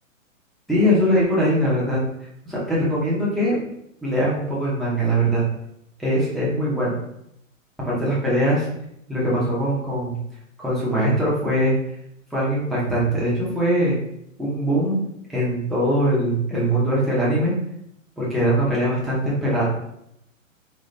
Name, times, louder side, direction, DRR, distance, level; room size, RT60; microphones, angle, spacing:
voice 1, 0.7-2.0 2.5-3.6 4.0-5.4 6.0-7.0 7.8-8.7 9.1-10.1 10.6-11.7 12.3-14.0 14.4-15.0 15.3-17.5 18.2-19.6, equal, ahead, -8 dB, 0.7 m, -21 dB
4.1 x 2.3 x 3.2 m, 0.77 s
hypercardioid pair, 135°, 40 cm